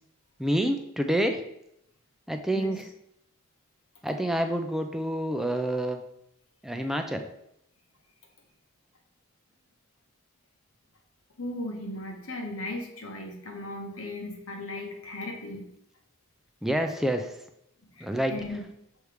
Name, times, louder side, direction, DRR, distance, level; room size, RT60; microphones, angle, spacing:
voice 1, 0.4-1.4 2.3-2.8 4.0-6.0 6.6-7.3 16.6-17.4 18.0-18.3, right 1 dB, ahead, 5 dB, 0.4 m, -27 dB
voice 2, 11.4-15.7 18.0-18.6, left 1 dB, 85° left, 2 dB, 1.2 m, -37 dB
6.6 x 3.2 x 4.9 m, 0.78 s
head